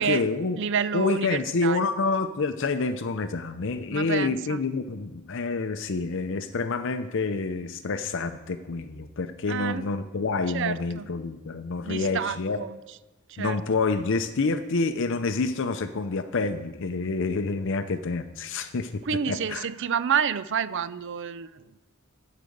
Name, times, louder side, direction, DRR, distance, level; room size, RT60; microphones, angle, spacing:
voice 1, 0.0-0.6 0.9-12.6 13.4-19.7, left 3 dB, 60° left, 9 dB, 0.6 m, -28 dB
voice 2, 0.6-1.9 3.9-4.6 9.5-9.9 10.5-11.1 11.8-12.7 13.3-13.6 19.1-21.6, right 7 dB, 60° right, 15 dB, 0.5 m, -29 dB
13.5 x 5.0 x 7.9 m, 1.1 s
head